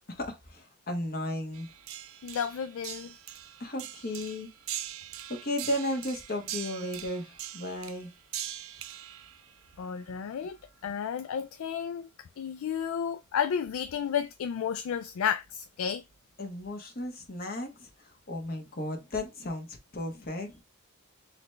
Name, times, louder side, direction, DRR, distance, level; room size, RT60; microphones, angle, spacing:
voice 1, 0.2-1.7 3.6-4.5 5.3-8.1 16.4-17.9 18.3-20.6, left 1 dB, 45° left, 1.2 m, -34 dB
sound 1, 1.5-10.7 12.8-12.9 13.7-13.9 15.1-15.5 16.1-16.2, right 12 dB, 75° right, 0.5 m, -42 dB
voice 2, 2.2-3.2 9.8-10.6 10.8-16.0, left 8 dB, 75° left, 0.3 m, -32 dB
4.0 x 3.2 x 3.2 m
head